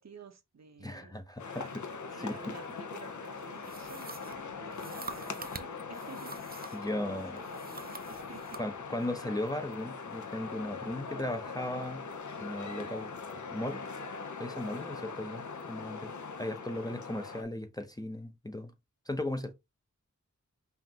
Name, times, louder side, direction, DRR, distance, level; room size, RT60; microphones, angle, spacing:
voice 1, 0.0-8.6, right 5 dB, 60° right, 0.8 m, -52 dB
voice 2, 0.8-1.8 2.2-2.6 6.7-7.4 8.6-12.0 12.4-13.8 14.4-16.1 16.4-18.7 19.1-19.5, left 1 dB, 10° left, 0.6 m, -37 dB
sound 1, 1.4-17.4, left 5 dB, 70° left, 0.7 m, -41 dB
sound 2, 3.6-6.9 7.4-8.7, right 4 dB, 30° right, 0.5 m, -46 dB
5.6 x 2.5 x 2.8 m
wide cardioid pair, 60°, 31 cm